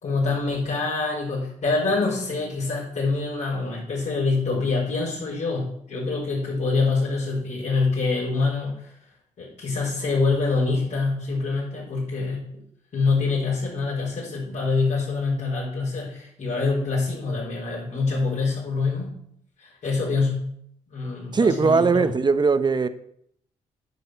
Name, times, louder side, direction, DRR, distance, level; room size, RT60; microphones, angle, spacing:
voice 1, 0.0-8.9 9.4-12.4 12.9-19.1 19.6-20.4 20.9-22.1, left 3 dB, 65° left, -8 dB, 5.0 m, -25 dB
voice 2, 21.3-22.9, right 4 dB, 35° right, 12 dB, 0.9 m, -19 dB
9.9 x 5.4 x 8.0 m, 0.69 s
cardioid pair, 75°, 13 cm